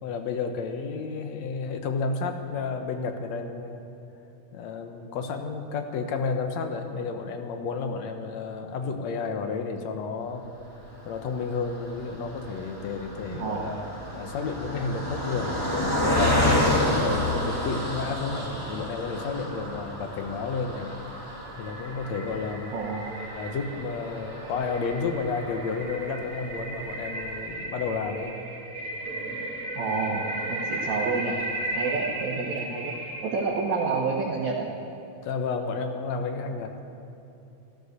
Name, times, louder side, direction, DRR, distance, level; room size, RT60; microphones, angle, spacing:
voice 1, 0.0-3.8 4.5-10.4 11.1-21.2 21.6-22.7 23.3-28.3 35.2-36.8, left 4 dB, 70° left, 6 dB, 2.1 m, -31 dB
Car passing by, 10.9-26.4 26.9-27.0 27.2-27.4, left 1 dB, 10° left, 2.2 m, -30 dB
voice 2, 13.3-13.9 22.7-23.1 29.7-31.4 31.7-32.9 33.2-34.7, right 4 dB, 75° right, -4 dB, 2.5 m, -29 dB
sound 1, 20.9-34.3, right 2 dB, 35° right, 2.2 m, -35 dB
14.0 x 13.0 x 6.7 m, 2.9 s
omnidirectional pair, 3.4 m